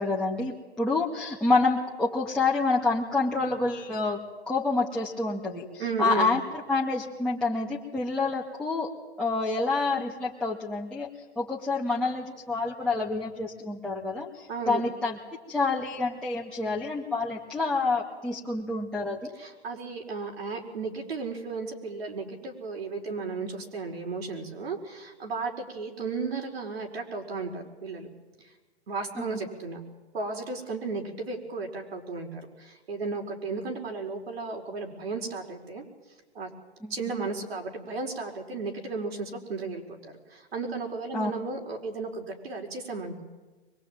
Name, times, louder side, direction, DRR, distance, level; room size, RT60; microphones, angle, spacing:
voice 1, 0.0-4.2 4.5-6.4 6.7-8.9 9.2-15.2 15.5-19.3 36.8-36.9 41.1-41.3, left 3 dB, 5° left, -6 dB, 2.2 m, -28 dB
voice 2, 5.8-6.3 14.5-14.8 19.4-28.1 28.9-29.8 30.1-35.8 36.3-36.5 36.9-43.2, right 4 dB, 65° right, 1 dB, 5.1 m, -34 dB
23.5 x 21.5 x 9.1 m, 1.2 s
figure-of-eight pair, 120°, 33 cm